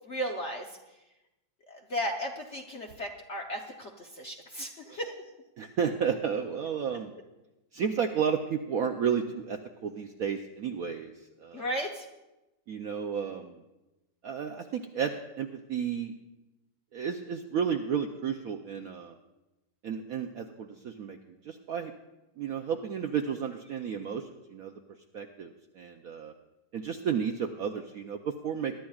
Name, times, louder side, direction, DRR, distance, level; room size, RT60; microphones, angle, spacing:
voice 1, 0.1-0.8 1.7-5.1 11.5-12.1, equal, 55° left, 2 dB, 0.8 m, -35 dB
voice 2, 5.6-7.1 7.7-11.1 11.4-11.7 12.7-13.6 14.2-16.1 16.9-19.1 19.8-21.2 21.4-21.9 22.4-24.7 25.1-26.3 26.7-28.7, right 7 dB, 70° right, 4 dB, 0.8 m, -32 dB
22.0 x 11.5 x 2.4 m, 1.0 s
omnidirectional pair, 2.1 m